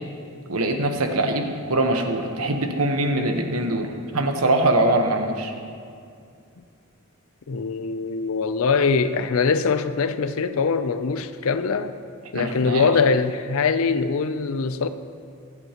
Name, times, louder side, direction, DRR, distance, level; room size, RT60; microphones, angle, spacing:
voice 1, 0.5-5.5 12.3-12.9, right 1 dB, 75° right, 4 dB, 1.1 m, -23 dB
voice 2, 7.5-12.0 12.3-14.9, left 5 dB, 70° left, 11 dB, 0.5 m, -22 dB
24.0 x 8.2 x 3.0 m, 2.4 s
head